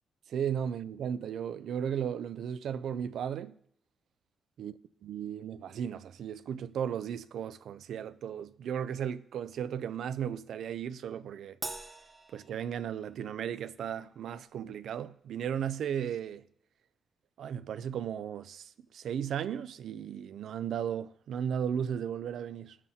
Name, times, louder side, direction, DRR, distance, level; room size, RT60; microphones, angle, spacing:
voice 1, 0.3-3.6 4.6-4.7 5.0-11.6 12.3-16.4 17.4-22.8, right 8 dB, 70° right, 0.3 m, -35 dB
Crash cymbal, 11.6-13.3, right 2 dB, 15° right, 0.8 m, -43 dB
20.5 x 7.3 x 2.7 m
wide cardioid pair, 175°, 0 cm